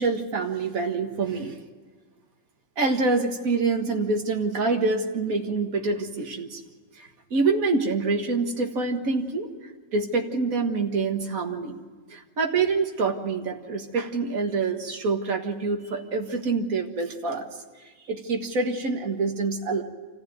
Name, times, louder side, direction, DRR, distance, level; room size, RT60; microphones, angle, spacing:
voice 1, 0.0-1.6 2.8-6.6 7.0-9.5 9.9-11.8 12.1-17.5 18.1-19.8, right 3 dB, 85° right, 3 dB, 2.1 m, -26 dB
26.5 x 15.0 x 9.2 m, 1.5 s
omnidirectional pair, 1.4 m